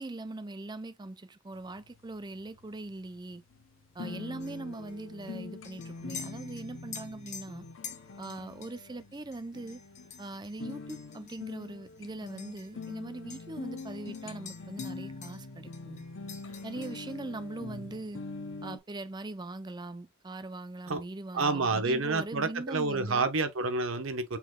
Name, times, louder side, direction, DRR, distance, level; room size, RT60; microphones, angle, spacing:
voice 1, 0.0-3.4 3.9-7.7 8.2-9.8 10.2-16.0 16.6-18.2 18.6-23.3, right 2 dB, 20° right, 0.5 m, -41 dB
sound 1, 1.5-18.8, left 3 dB, 75° left, 0.7 m, -44 dB
sound 2, 4.4-13.0 13.3-15.5 15.7-17.2, left 7 dB, 35° left, 1.1 m, -49 dB
voice 2, 21.3-24.4, right 3 dB, 85° right, 1.0 m, -29 dB
5.8 x 3.9 x 2.3 m
head